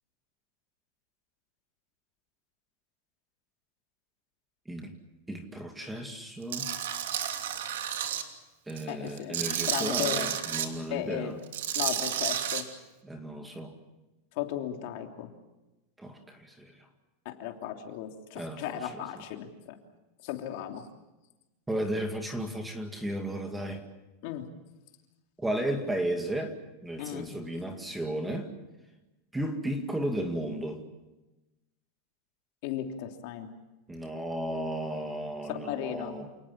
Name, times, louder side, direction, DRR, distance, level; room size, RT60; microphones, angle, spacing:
voice 1, 5.3-6.7 8.7-11.4 13.0-13.7 16.0-16.7 18.4-19.0 21.7-23.8 25.4-26.5 26.8-28.5 29.3-30.8 33.9-36.3, right 1 dB, 5° right, 5 dB, 2.1 m, -34 dB
Tools, 6.5-8.2 8.7-10.7 11.4-12.6, right 9 dB, 85° right, 2.9 m, -31 dB
voice 2, 8.9-9.4 9.7-10.3 10.9-11.3 11.7-12.7 14.4-15.3 17.2-19.8 20.2-20.9 24.2-24.5 27.0-27.4 32.6-33.5 35.5-36.2, left 11 dB, 50° left, 4 dB, 3.0 m, -35 dB
29.0 x 19.0 x 7.4 m, 1.0 s
supercardioid pair, 160°, 0 cm